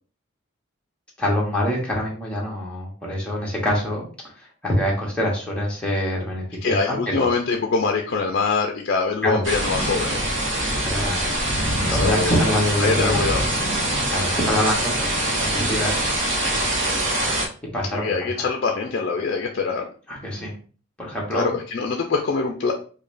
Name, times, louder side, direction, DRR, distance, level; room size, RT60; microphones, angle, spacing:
voice 1, 1.2-4.0 4.4-7.3 9.2-9.4 10.6-11.4 11.9-13.3 14.1-16.1 17.7-18.4 20.1-20.5 21.0-21.5, equal, 5° left, -4 dB, 1.0 m, -25 dB
voice 2, 6.6-10.2 11.9-12.5 12.8-13.4 17.9-19.9 21.3-22.7, left 4 dB, 55° left, 2 dB, 0.4 m, -24 dB
sound 1, 9.4-17.5, right 1 dB, 65° right, 0.8 m, -24 dB
5.0 x 2.1 x 2.5 m, 0.40 s
head